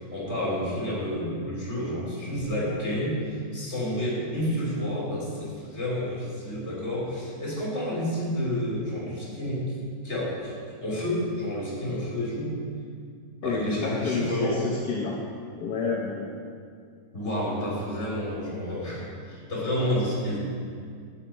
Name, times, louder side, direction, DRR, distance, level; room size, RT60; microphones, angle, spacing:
voice 1, 0.0-9.7 10.0-10.5 10.8-12.6 13.4-14.6 17.1-20.4, left 1 dB, 40° left, -6 dB, 3.7 m, -30 dB
voice 2, 13.4-15.2 15.6-16.3, left 4 dB, 70° left, -2 dB, 1.5 m, -30 dB
11.5 x 9.0 x 4.4 m, 2.2 s
omnidirectional pair, 1.8 m